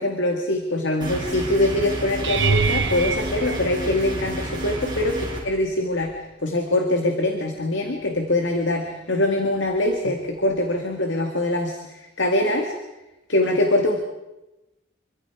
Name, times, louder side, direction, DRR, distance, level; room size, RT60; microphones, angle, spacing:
voice 1, 0.0-12.7 13.3-14.0, left 1 dB, 65° left, 3 dB, 2.1 m, -23 dB
sound 1, 1.0-5.4, right 1 dB, 20° right, 6.1 m, -31 dB
sound 2, 2.2-4.5 5.2-5.7 6.0-6.2 10.5-10.6, right 5 dB, 60° right, 1.4 m, -26 dB
27.0 x 24.0 x 4.9 m, 0.99 s
head